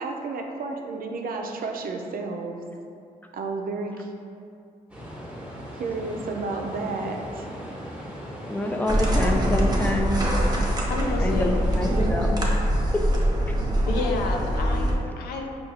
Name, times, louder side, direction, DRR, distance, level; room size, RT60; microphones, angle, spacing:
voice 1, 0.0-2.6 3.3-4.1 5.8-7.5, right 3 dB, 65° right, 2 dB, 0.4 m, -31 dB
sound 1, 4.9-12.1, equal, 10° right, 1.0 m, -38 dB
voice 2, 8.5-10.2 11.2-12.6 12.9-13.0 13.5-13.6, left 1 dB, 10° left, 2 dB, 0.4 m, -27 dB
sound 2, 8.9-14.9, equal, 25° right, 0.7 m, -23 dB
voice 3, 10.9-11.6 13.9-15.5, left 3 dB, 85° left, 1 dB, 0.4 m, -30 dB
4.6 x 2.3 x 2.8 m, 2.5 s
cardioid pair, 55°, 16 cm